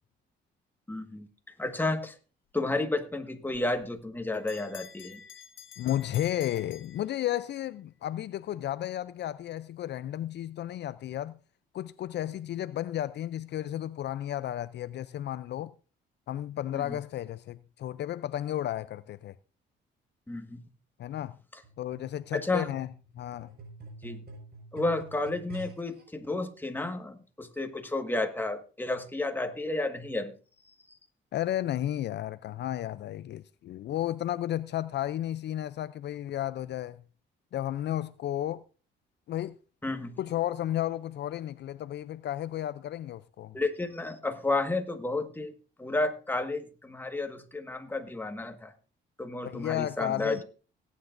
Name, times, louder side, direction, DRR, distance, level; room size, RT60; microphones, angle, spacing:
voice 1, 0.9-1.3 1.6-2.1 2.5-5.2 16.7-17.0 20.3-20.6 21.5-21.6 22.3-22.7 24.0-24.2 24.7-30.3 39.8-40.1 43.5-45.5 45.8-48.7 49.2-50.4, left 2 dB, 10° left, 1.6 m, -32 dB
Bell, 3.8-7.6, left 8 dB, 75° left, 1.7 m, -50 dB
voice 2, 5.8-11.4 11.7-15.7 16.3-19.3 21.0-21.4 21.8-22.9 23.1-23.5 31.3-37.0 37.5-38.6 39.3-39.6 40.2-43.6 49.4-50.4, left 12 dB, 60° left, 0.4 m, -33 dB
sound 1, 21.6-26.0 26.8-26.9, right 2 dB, 55° right, 4.9 m, -48 dB
18.0 x 9.4 x 2.6 m
cardioid pair, 90°, 20 cm